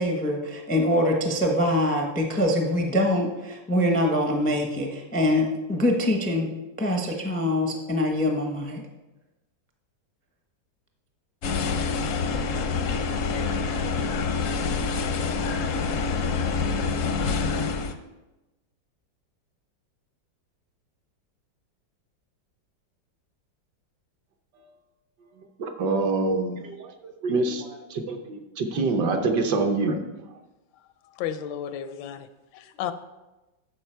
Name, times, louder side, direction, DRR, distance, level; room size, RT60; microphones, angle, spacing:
voice 1, 0.0-6.5 6.8-8.8, left 1 dB, 10° left, 2 dB, 0.4 m, -24 dB
sound 1, 11.4-17.9, left 4 dB, 65° left, 0.7 m, -26 dB
voice 2, 25.6-30.0, right 3 dB, 70° right, 4 dB, 1.5 m, -26 dB
voice 3, 31.2-32.3 32.5-32.9, left 9 dB, 85° left, 11 dB, 1.3 m, -32 dB
12.5 x 4.9 x 4.5 m, 1.1 s
omnidirectional pair, 2.0 m